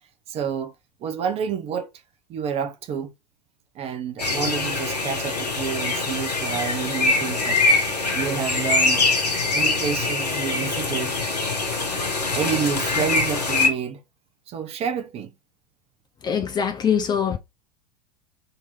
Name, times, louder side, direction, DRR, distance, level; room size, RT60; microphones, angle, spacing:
voice 1, 0.3-0.7 1.0-1.9 2.3-3.1 3.7-7.6 8.1-9.0 9.5-11.2 12.3-14.0 14.5-15.3, right 7 dB, 30° right, 0.9 m, -29 dB
sound 1, 4.2-13.7, left 3 dB, 75° left, 1.5 m, -23 dB
voice 2, 16.2-17.4, left 7 dB, 20° left, 0.6 m, -23 dB
3.9 x 3.0 x 4.0 m
figure-of-eight pair, 90°, 21 cm